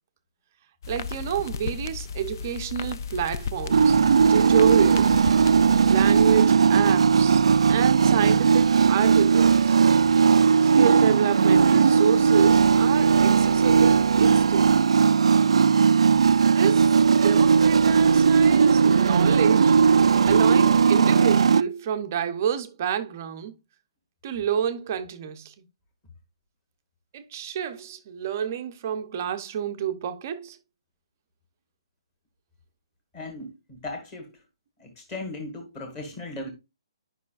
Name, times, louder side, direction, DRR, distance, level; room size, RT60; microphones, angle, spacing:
sound 1, 0.8-6.4, left 6 dB, 40° left, 0.4 m, -35 dB
voice 1, 0.9-4.0 4.3-5.2 5.9-9.8 10.6-14.9 16.5-19.8 20.2-23.5 24.2-25.5 27.1-30.6, right 9 dB, 30° right, 0.6 m, -29 dB
sound 2, 3.7-21.6, right 6 dB, 75° right, 0.3 m, -18 dB
voice 2, 33.1-34.4 34.8-36.5, left 2 dB, 15° left, 1.7 m, -37 dB
11.0 x 5.5 x 2.4 m
hypercardioid pair, 175°, 3 cm